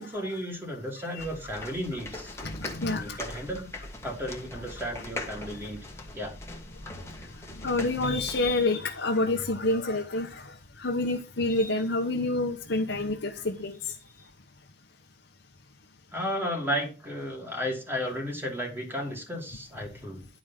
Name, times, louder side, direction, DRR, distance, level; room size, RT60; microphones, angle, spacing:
voice 1, 0.0-2.3 2.9-3.7 4.0-5.8 6.1-6.4 16.1-20.2, equal, 10° right, 2.8 m, -33 dB
sound 1, 1.2-8.5, left 2 dB, 15° left, 1.5 m, -41 dB
voice 2, 2.4-3.2 5.6-5.7 7.6-10.5 10.8-13.8, left 2 dB, 65° left, 1.1 m, -28 dB
11.0 x 5.0 x 5.8 m
head